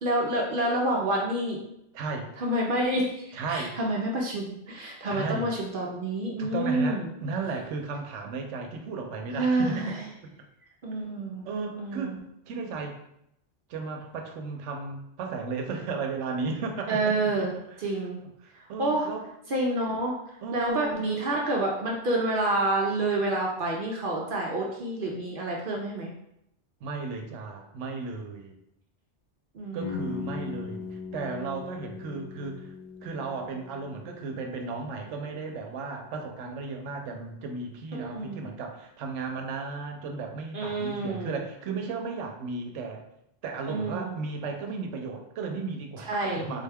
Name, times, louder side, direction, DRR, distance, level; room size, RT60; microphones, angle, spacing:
voice 1, 0.0-1.6 2.4-7.1 9.3-10.0 10.8-11.5 11.8-12.1 16.9-17.5 17.8-18.2 18.6-19.1 19.5-20.2 20.5-26.1 29.5-30.0 37.9-38.4 40.5-41.4 43.7-44.2 46.0-46.4, right 2 dB, 60° right, -2 dB, 0.6 m, -28 dB
voice 2, 1.9-2.3 3.3-3.8 5.1-5.5 6.4-10.0 10.9-11.0 11.4-12.2 12.5-13.0 13.7-18.0 18.4-19.3 20.4-21.0 26.8-28.6 29.7-32.7 33.0-43.0 43.4-46.6, right 4 dB, 85° right, 3 dB, 0.9 m, -35 dB
sound 1, 29.8-35.6, left 5 dB, 65° left, 0.4 m, -40 dB
3.7 x 2.2 x 3.4 m, 0.80 s
omnidirectional pair, 1.2 m